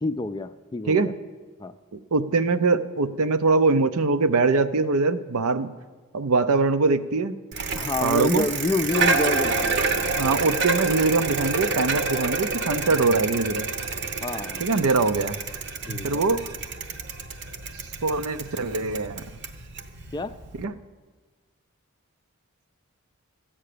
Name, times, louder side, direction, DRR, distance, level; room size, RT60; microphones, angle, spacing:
voice 1, 0.0-1.1 1.6-1.7 7.7-9.8 14.2-14.6 15.8-16.2 20.1-20.3, left 2 dB, 20° left, 10 dB, 0.3 m, -28 dB
voice 2, 1.9-5.7 6.1-7.4 8.0-8.4 10.2-13.6 14.6-15.4 16.0-16.4 18.0-19.2 20.6-20.7, right 3 dB, 80° right, 11 dB, 0.6 m, -22 dB
Bicycle, 7.5-20.6, right 4 dB, 50° right, 0.9 m, -28 dB
14.0 x 8.8 x 6.8 m, 1.4 s
head